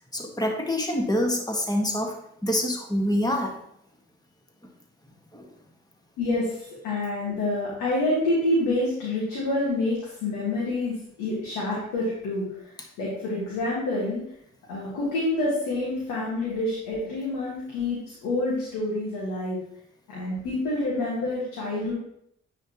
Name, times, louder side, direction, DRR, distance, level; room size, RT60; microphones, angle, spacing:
voice 1, 0.1-2.2 2.4-3.6 5.3-5.4, left 1 dB, 10° left, 1 dB, 1.6 m, -26 dB
voice 2, 6.2-12.7 13.0-14.2 14.7-19.6 20.1-21.9, left 2 dB, 85° left, -6 dB, 1.6 m, -27 dB
9.5 x 4.0 x 2.9 m, 0.72 s
hypercardioid pair, 40°, 31 cm